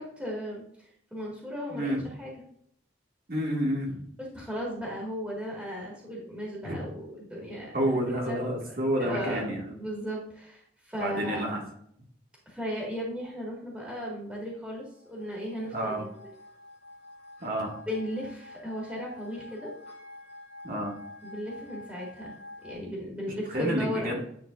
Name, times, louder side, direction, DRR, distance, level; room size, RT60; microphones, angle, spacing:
voice 1, 0.0-1.9 2.2-2.3 4.3-11.5 12.5-16.1 17.9-19.7 21.2-22.3 22.6-24.2, equal, 5° right, -4 dB, 1.8 m, -36 dB
voice 2, 1.7-2.0 3.3-4.1 6.6-6.8 7.7-9.7 11.0-11.6 15.7-16.0 17.4-17.8 20.6-20.9 23.5-24.2, equal, 50° right, -1 dB, 1.8 m, -29 dB
sound 1, 15.0-22.7, left 2 dB, 55° left, 2.7 m, -48 dB
10.0 x 3.9 x 2.5 m, 0.68 s
head